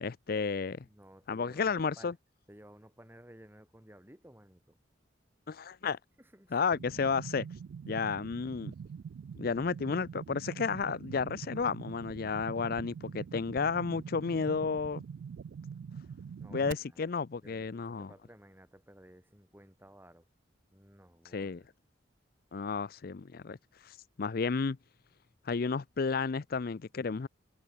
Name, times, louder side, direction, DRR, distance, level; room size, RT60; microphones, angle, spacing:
voice 1, 0.0-0.8 1.3-2.1 5.5-6.0 6.5-7.5 7.9-8.7 9.4-15.0 16.5-18.1 21.3-21.6 22.5-23.6 23.8-24.8 25.5-27.3, left 5 dB, 50° left, 0.5 m, -32 dB
voice 2, 0.8-2.2 2.5-4.8 6.2-6.7 16.4-17.1 17.4-20.3 20.7-21.7, right 1 dB, 10° right, 5.2 m, -56 dB
sound 1, 6.7-16.7, right 6 dB, 75° right, 0.3 m, -44 dB
head